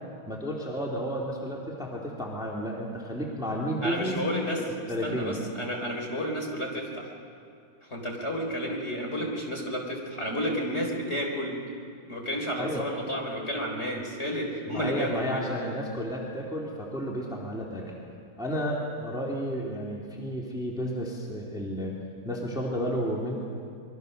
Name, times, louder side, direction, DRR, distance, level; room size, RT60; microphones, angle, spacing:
voice 1, 0.3-4.3 4.9-5.4 12.6-12.8 14.7-17.9 18.4-22.0 22.2-23.3, equal, ahead, -3 dB, 2.8 m, -32 dB
voice 2, 3.8-4.6 5.0-7.1 7.9-11.6 12.1-15.4, equal, 30° left, 1 dB, 4.0 m, -31 dB
26.0 x 22.5 x 6.7 m, 2.4 s
omnidirectional pair, 2.4 m